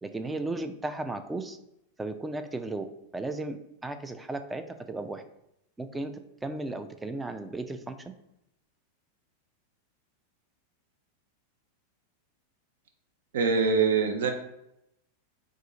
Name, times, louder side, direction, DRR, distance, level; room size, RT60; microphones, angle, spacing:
voice 1, 0.0-1.6 2.0-2.9 3.1-3.6 3.8-5.2 5.8-8.0, right 2 dB, 10° right, 9 dB, 0.3 m, -35 dB
voice 2, 13.3-14.3, right 5 dB, 60° right, 5 dB, 0.6 m, -24 dB
3.5 x 2.4 x 4.0 m, 0.82 s
figure-of-eight pair, 90°, 0 cm